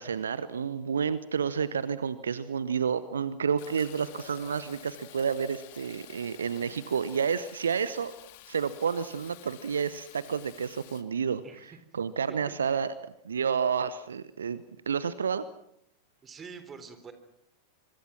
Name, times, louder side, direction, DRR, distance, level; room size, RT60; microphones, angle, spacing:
voice 1, 0.0-8.1 8.5-15.4, right 6 dB, 70° right, 16 dB, 0.9 m, -30 dB
Fill (with liquid), 3.6-11.0, left 14 dB, 50° left, 1.9 m, -50 dB
voice 2, 11.4-11.8 12.3-12.4 12.6-12.8 16.2-17.1, right 5 dB, 20° right, 10 dB, 3.5 m, -46 dB
25.0 x 24.5 x 6.0 m, 0.74 s
figure-of-eight pair, 90°, 0 cm